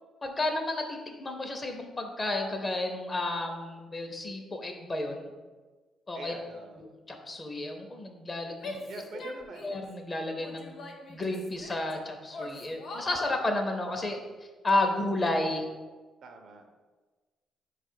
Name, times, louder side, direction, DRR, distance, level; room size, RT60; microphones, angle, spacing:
voice 1, 0.2-5.3 6.1-6.3 7.1-8.9 9.6-10.8 11.1-14.2 14.6-15.6, left 2 dB, 30° left, 4 dB, 0.7 m, -32 dB
voice 2, 6.1-6.9 8.7-9.7 16.2-16.7, right 3 dB, 65° right, 4 dB, 0.6 m, -44 dB
Female speech woman speaking / Yell, 8.6-9.9 10.4-11.9 12.3-13.4, left 2 dB, 65° left, 0.7 m, -42 dB
4.6 x 2.4 x 4.5 m, 1.3 s
cardioid pair, 90°, 0 cm